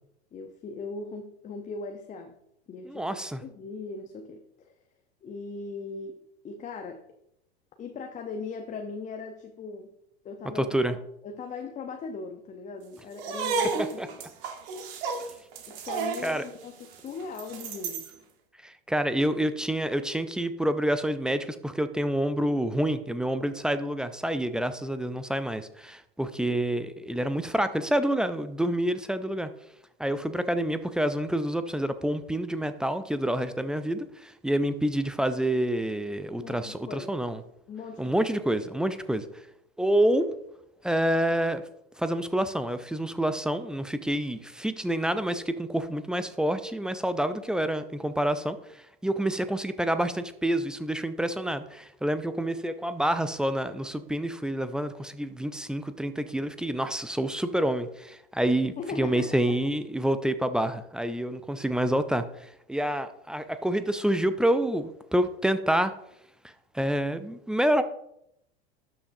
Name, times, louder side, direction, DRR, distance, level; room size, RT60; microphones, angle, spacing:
voice 1, 0.3-2.4 2.7-4.7 5.2-7.1 7.8-9.9 10.2-10.9 11.2-13.7 15.7-18.1 36.4-37.2 37.7-38.3 58.8-59.4, left 4 dB, 25° left, 5 dB, 0.8 m, -39 dB
voice 2, 2.8-3.4 10.6-10.9 13.8-14.1 16.2-16.4 18.6-29.5 30.0-37.4 38.0-39.3 39.8-40.2 40.8-41.6 42.0-65.9 66.7-67.8, right 1 dB, 5° right, 11 dB, 0.3 m, -28 dB
sound 1, 13.1-18.1, right 5 dB, 55° right, 1.5 m, -32 dB
12.5 x 5.9 x 2.7 m, 0.78 s
hypercardioid pair, 95°, 32 cm